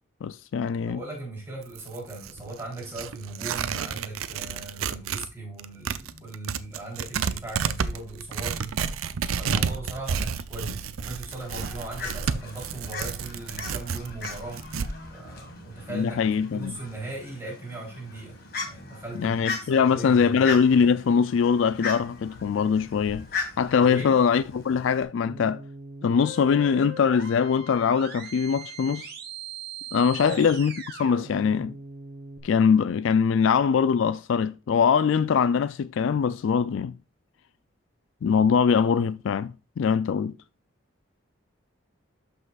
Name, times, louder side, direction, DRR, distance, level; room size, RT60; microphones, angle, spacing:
voice 1, 0.2-1.0 15.9-16.8 19.1-23.3 23.6-25.6 26.0-29.1 29.9-31.7 32.4-37.0 38.2-40.3, left 6 dB, 70° left, 0.3 m, -22 dB
voice 2, 0.8-8.6 9.4-14.6 15.1-19.4 19.7-20.5 23.8-24.1 30.2-30.4, right 2 dB, 10° right, 3.5 m, -38 dB
Tearing, 1.6-5.3 5.6-14.9, right 6 dB, 85° right, 0.5 m, -31 dB
Fowl, 11.4-25.0, left 4 dB, 50° left, 1.8 m, -38 dB
sound 1, 25.3-32.4, right 4 dB, 50° right, 1.3 m, -41 dB
12.0 x 5.5 x 2.4 m
head